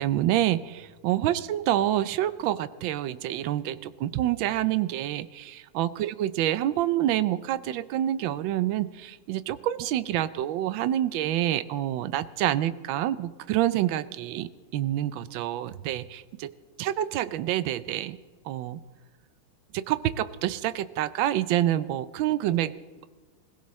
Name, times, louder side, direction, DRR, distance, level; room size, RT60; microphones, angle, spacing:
voice 1, 0.0-16.5 16.8-18.2 18.5-18.8 19.7-22.7, right 12 dB, 75° right, 14 dB, 1.3 m, -27 dB
25.0 x 16.5 x 3.2 m, 1.4 s
omnidirectional pair, 2.3 m